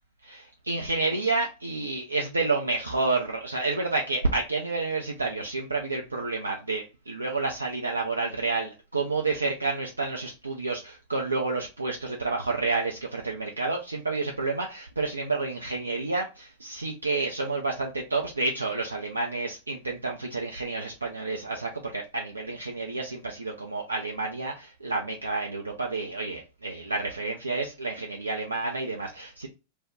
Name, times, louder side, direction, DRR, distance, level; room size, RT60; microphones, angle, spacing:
voice 1, 0.2-29.5, right 3 dB, 80° right, 1 dB, 0.4 m, -29 dB
2.5 x 2.1 x 3.5 m, 0.29 s
figure-of-eight pair, 90°, 0 cm